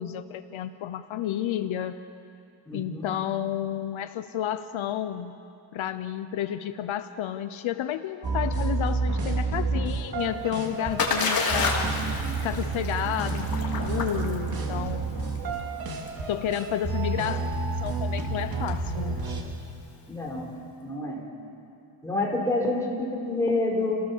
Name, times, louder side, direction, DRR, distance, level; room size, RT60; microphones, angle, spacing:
voice 1, 0.0-2.0 2.7-5.4 5.7-12.0 12.4-15.3 16.3-17.4 17.7-19.2, left 10 dB, 75° left, 10 dB, 0.9 m, -31 dB
voice 2, 2.7-3.1 20.1-20.5 20.8-21.2 22.0-24.0, left 2 dB, 5° left, -3 dB, 4.5 m, -28 dB
sound 1, 8.2-19.4, right 3 dB, 45° right, 2.8 m, -30 dB
Splash splatter, 10.3-20.1, left 4 dB, 45° left, 2.9 m, -32 dB
29.5 x 18.0 x 7.3 m, 2.7 s
wide cardioid pair, 160°, 48 cm